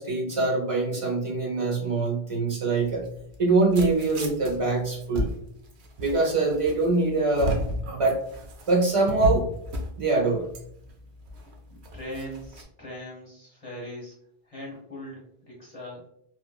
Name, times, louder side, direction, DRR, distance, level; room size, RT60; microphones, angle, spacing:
voice 1, 0.0-3.1 3.4-5.3 6.0-7.6 7.9-8.3 8.7-9.5 10.0-10.5, right 3 dB, 35° right, -1 dB, 0.8 m, -24 dB
sound 1, 2.8-12.6, equal, 80° right, 0.9 m, -34 dB
voice 2, 11.7-14.2 14.4-16.0, equal, 35° left, -5 dB, 0.9 m, -40 dB
3.0 x 2.5 x 2.3 m, 0.67 s
omnidirectional pair, 1.1 m